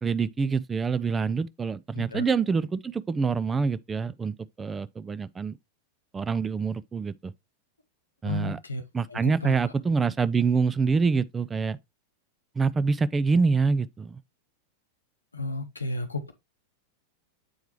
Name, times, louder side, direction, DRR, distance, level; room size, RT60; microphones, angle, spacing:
voice 1, 0.0-5.6 6.1-7.3 8.2-8.6 8.9-11.8 12.6-14.2, right 5 dB, 15° right, 0.3 m, -26 dB
voice 2, 8.2-8.8 9.1-9.5 15.3-16.3, left 2 dB, 80° left, 0.7 m, -32 dB
7.8 x 4.6 x 3.1 m
figure-of-eight pair, 90°, 0 cm